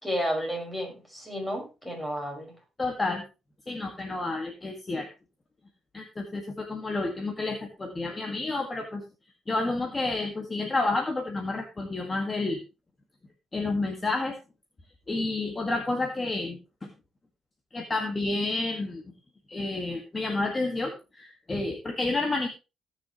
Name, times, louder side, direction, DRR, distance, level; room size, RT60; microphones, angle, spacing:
voice 1, 0.0-2.5, equal, 5° left, 0 dB, 5.6 m, -32 dB
voice 2, 2.8-3.2 3.7-5.1 5.9-9.0 9.5-12.6 13.5-14.3 15.1-16.9 17.7-19.0 19.5-22.5, left 2 dB, 25° left, 3 dB, 1.9 m, -30 dB
17.5 x 6.5 x 3.1 m, 0.28 s
cardioid pair, 90°, 0 cm